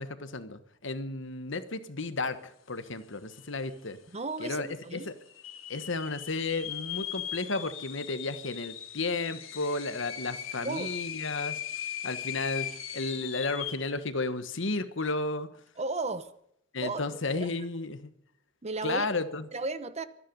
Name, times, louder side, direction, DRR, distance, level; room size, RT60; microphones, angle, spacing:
voice 1, 0.0-4.0 4.4-5.1 5.7-11.6 12.0-12.7 12.9-15.5 16.7-18.1 18.8-19.5, left 3 dB, 65° left, 11 dB, 1.4 m, -33 dB
sound 1, 3.0-3.1 3.3-3.9 4.4-4.5 5.2-14.0, left 9 dB, 85° left, 2.9 m, -39 dB
voice 2, 4.1-5.1 10.6-10.9 15.8-16.3 16.8-17.0 17.4-17.5 18.6-19.1 19.5-20.0, right 3 dB, 35° right, 13 dB, 0.9 m, -34 dB
24.5 x 10.0 x 5.4 m, 0.75 s
head